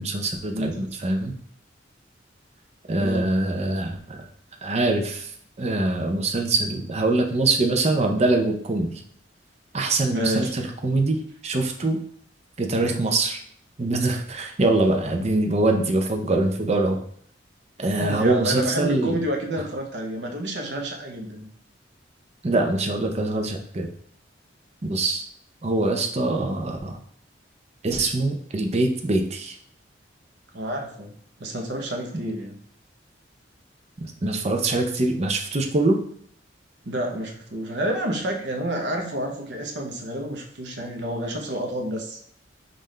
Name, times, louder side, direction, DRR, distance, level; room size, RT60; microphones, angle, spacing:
voice 1, 0.0-1.3 2.9-4.2 4.6-5.3 5.6-9.0 9.7-12.0 12.6-13.4 13.8-17.0 17.8-19.2 22.4-23.9 24.8-25.2 25.6-27.0 27.8-29.5 34.0-36.0, right 2 dB, 35° right, 4 dB, 0.6 m, -23 dB
voice 2, 3.0-3.3 10.1-10.5 17.9-21.5 30.5-31.1 31.4-32.6 36.9-42.2, right 1 dB, 65° right, 2 dB, 0.8 m, -29 dB
5.5 x 2.6 x 3.2 m, 0.62 s
head